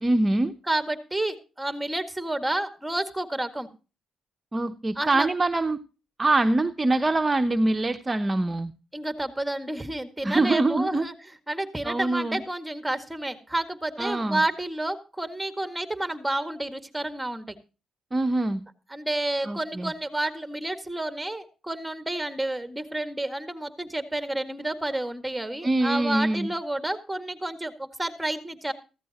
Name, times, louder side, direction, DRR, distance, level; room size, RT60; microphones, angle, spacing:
voice 1, 0.0-0.5 4.5-5.8 6.2-8.7 10.2-11.0 11.8-12.4 14.0-14.4 18.1-18.6 19.4-19.9 25.6-26.5, right 2 dB, 25° right, 7 dB, 0.9 m, -24 dB
voice 2, 0.7-3.7 5.0-5.3 8.9-11.1 11.5-17.6 18.9-28.7, right 1 dB, 10° right, 9 dB, 1.9 m, -30 dB
15.0 x 14.5 x 2.9 m, 0.33 s
cardioid pair, 65°, 0 cm